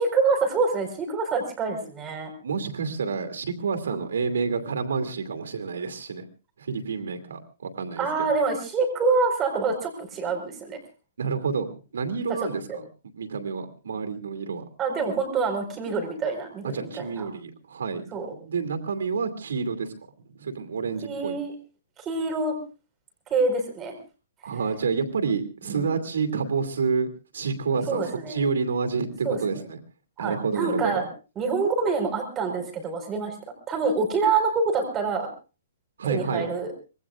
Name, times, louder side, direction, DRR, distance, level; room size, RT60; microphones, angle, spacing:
voice 1, 0.0-2.3 3.9-4.0 8.0-10.8 12.4-12.8 14.8-17.3 18.1-18.3 21.0-21.5 22.0-22.6 23.3-23.9 25.7-25.9 27.9-28.4 29.2-29.4 30.2-31.1 31.4-33.4 33.7-35.3 36.1-36.7, right 4 dB, 20° right, 5 dB, 4.6 m, -26 dB
voice 2, 2.4-6.3 6.6-8.1 11.2-12.8 13.2-14.6 16.6-19.9 20.4-21.3 24.4-27.1 27.3-29.8 30.2-31.0 36.0-36.5, right 5 dB, 90° right, 8 dB, 2.6 m, -29 dB
25.5 x 21.0 x 2.5 m, 0.33 s
hypercardioid pair, 160°, 0 cm